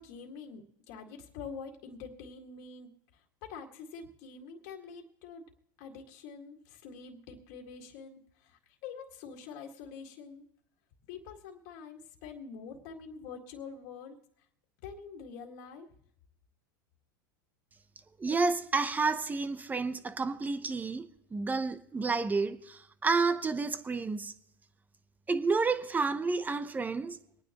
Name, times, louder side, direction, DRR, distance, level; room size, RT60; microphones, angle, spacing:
voice 1, 0.0-2.9 3.4-5.5 5.8-10.4 11.1-14.2 14.8-15.9, left 5 dB, 60° left, 2.0 m, -46 dB
voice 2, 18.2-24.3 25.3-27.2, right 4 dB, 15° right, 0.9 m, -30 dB
24.0 x 9.6 x 3.0 m
hypercardioid pair, 110°, 11 cm